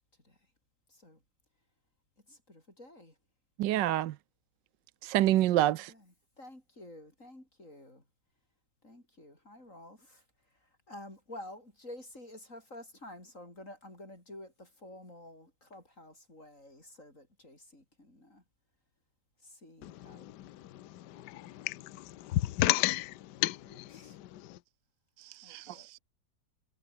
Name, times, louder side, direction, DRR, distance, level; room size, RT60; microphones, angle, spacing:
voice 1, 0.9-1.2 2.3-3.2 5.5-8.1 8.8-18.4 19.4-20.3 23.7-24.2 25.4-26.0, left 1 dB, 45° left, 8.0 m, -51 dB
voice 2, 3.6-4.1 5.0-5.9 25.2-26.0, right 14 dB, 80° right, 1.3 m, -28 dB
voice 3, 19.8-24.6, left 16 dB, 70° left, 1.3 m, -33 dB
omnidirectional pair, 2.0 m